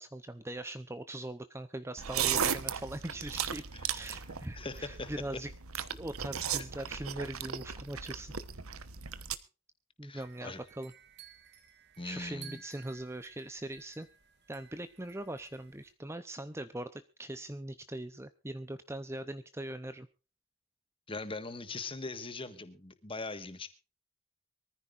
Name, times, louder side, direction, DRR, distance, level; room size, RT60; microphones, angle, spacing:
voice 1, 0.0-3.6 3.9-8.3 10.0-10.9 12.0-14.1 14.5-20.1, right 1 dB, 10° right, 11 dB, 0.7 m, -41 dB
sound 1, 2.0-9.4, right 8 dB, 75° right, 1.1 m, -36 dB
voice 2, 4.5-5.4 10.0-10.6 12.0-12.6 21.1-23.7, left 3 dB, 25° left, 11 dB, 1.5 m, -41 dB
sound 2, 10.1-15.9, right 8 dB, 50° right, 2.4 m, -56 dB
24.0 x 14.5 x 2.5 m, 0.33 s
head